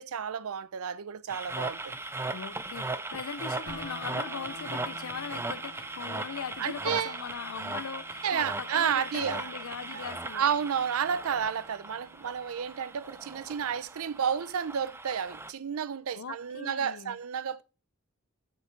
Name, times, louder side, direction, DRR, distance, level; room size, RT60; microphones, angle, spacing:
voice 1, 0.0-1.9 6.6-7.1 8.2-9.5 9.9-10.0 10.3-17.6, right 8 dB, 75° right, 0.5 m, -31 dB
sound 1, 1.3-15.5, right 2 dB, 10° right, 0.4 m, -38 dB
voice 2, 2.3-10.5 16.1-17.2, left 6 dB, 70° left, 0.5 m, -40 dB
sound 2, 3.7-13.6, equal, 55° right, 2.9 m, -50 dB
6.9 x 6.8 x 4.4 m
head